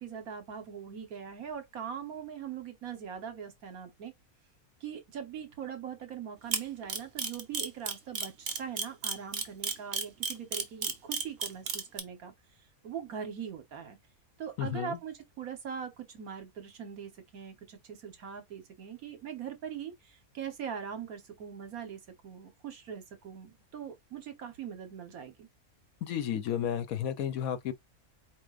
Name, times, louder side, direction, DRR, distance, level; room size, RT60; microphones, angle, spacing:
voice 1, 0.0-4.1 4.8-12.3 12.8-14.0 14.4-25.5, right 8 dB, 75° right, 1.6 m, -41 dB
Camera, 6.5-12.0, right 5 dB, 50° right, 1.0 m, -31 dB
voice 2, 14.6-15.0 26.0-27.7, left 9 dB, 75° left, 1.2 m, -32 dB
4.7 x 4.4 x 2.4 m
omnidirectional pair, 1.5 m